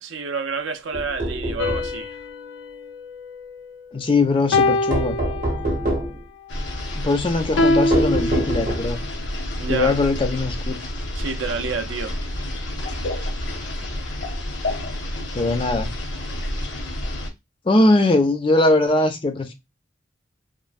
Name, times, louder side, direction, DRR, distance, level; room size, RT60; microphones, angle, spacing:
voice 1, 0.0-2.2 9.6-9.9 11.1-12.1, right 5 dB, 80° right, 0.4 m, -28 dB
sound 1, 0.9-1.9 4.9-6.2 7.9-9.1, right 1 dB, 45° right, 0.7 m, -25 dB
sound 2, 1.6-3.9 4.5-6.0 7.6-9.1, left 2 dB, 90° left, 0.4 m, -24 dB
voice 2, 3.9-5.2 6.9-9.0 9.7-10.8 15.3-15.9 17.7-19.5, left 2 dB, 25° left, 0.4 m, -20 dB
sound 3, 6.5-17.3, left 1 dB, 65° left, 0.7 m, -29 dB
3.1 x 2.0 x 2.4 m
head